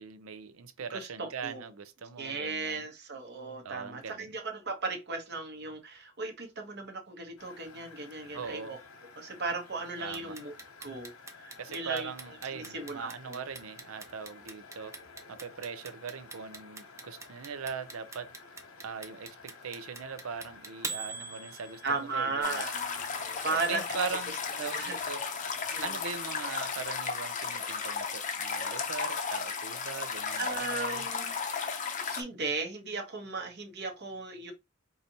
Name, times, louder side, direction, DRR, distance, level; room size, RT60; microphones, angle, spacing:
voice 1, 0.0-2.8 3.6-4.4 8.3-8.8 10.0-10.3 11.6-15.0 15.3-18.3 18.8-22.7 23.3-25.3 25.8-31.1, right 6 dB, 90° right, 0.5 m, -40 dB
voice 2, 0.9-1.6 2.2-8.8 9.2-10.5 10.8-13.4 21.8-24.2 24.6-25.0 25.7-25.9 30.4-31.3 32.0-34.5, right 3 dB, 55° right, 0.9 m, -36 dB
sound 1, 7.4-26.8, left 4 dB, 85° left, 0.8 m, -52 dB
Clock, 10.1-22.1, right 4 dB, 15° right, 0.5 m, -42 dB
sound 2, 22.4-32.2, left 5 dB, 40° left, 0.6 m, -34 dB
4.8 x 2.7 x 2.7 m
head